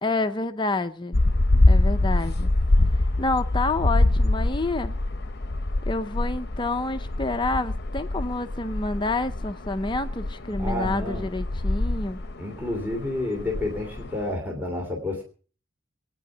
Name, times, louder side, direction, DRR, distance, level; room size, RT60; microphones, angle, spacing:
voice 1, 0.0-1.2 1.7-2.5 3.2-4.9 5.9-12.2, left 2 dB, 25° left, 0.6 m, -28 dB
sound 1, 1.1-14.3, left 2 dB, 50° left, 0.9 m, -25 dB
voice 2, 10.6-11.3 12.4-15.2, left 2 dB, 10° right, 2.9 m, -30 dB
20.0 x 9.3 x 6.1 m
head